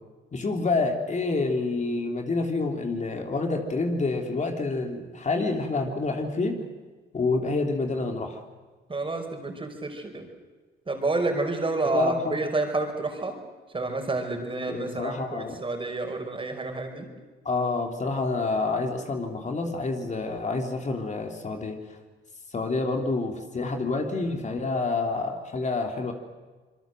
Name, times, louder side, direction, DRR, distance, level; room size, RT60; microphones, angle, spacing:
voice 1, 0.3-6.6 7.1-8.4 11.9-12.4 14.7-15.6 17.4-21.8 22.5-26.1, left 3 dB, 35° left, 3 dB, 3.3 m, -28 dB
voice 2, 8.9-10.3 10.9-13.4 13.7-17.1, right 3 dB, 25° right, 5 dB, 5.2 m, -29 dB
26.5 x 22.0 x 7.8 m, 1.3 s
cardioid pair, 90°, 20 cm